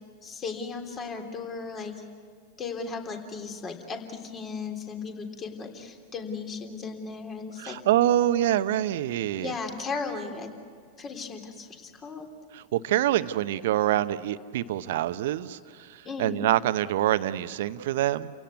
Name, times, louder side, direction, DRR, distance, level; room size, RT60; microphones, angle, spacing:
voice 1, 0.2-1.9 2.6-7.8 9.4-10.5 11.0-12.3 16.0-16.5, left 4 dB, 30° left, 4 dB, 3.3 m, -36 dB
voice 2, 7.6-9.5 12.5-15.6 16.2-18.3, right 13 dB, 60° right, 13 dB, 0.9 m, -25 dB
30.0 x 17.0 x 9.6 m, 2.1 s
figure-of-eight pair, 95°, 0 cm